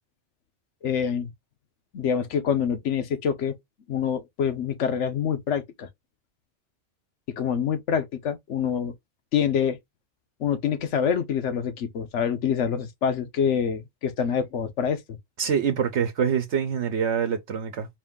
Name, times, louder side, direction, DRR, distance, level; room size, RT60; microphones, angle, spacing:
voice 1, 0.8-1.3 1.9-3.5 3.9-5.9 7.4-8.9 9.3-9.8 10.4-15.2, left 7 dB, 80° left, 1.1 m, -26 dB
voice 2, 15.4-17.9, right 7 dB, 70° right, 1.1 m, -25 dB
4.8 x 2.6 x 3.6 m
omnidirectional pair, 1.2 m